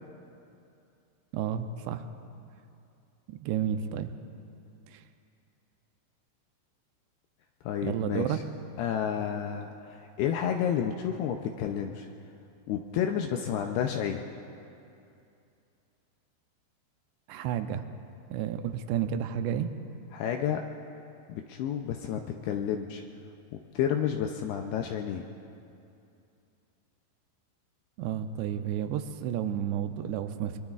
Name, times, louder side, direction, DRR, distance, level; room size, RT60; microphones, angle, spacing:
voice 1, 1.3-2.1 3.3-4.1 4.9-5.0 7.8-8.4 17.3-17.9 18.3-19.7 28.0-30.6, right 9 dB, 85° right, 8 dB, 2.7 m, -31 dB
voice 2, 7.6-8.4 8.8-12.1 12.7-14.3 20.1-20.6 21.3-23.0 23.7-25.3, left 8 dB, 80° left, 4 dB, 2.4 m, -30 dB
24.0 x 24.0 x 2.4 m, 2.6 s
omnidirectional pair, 5.1 m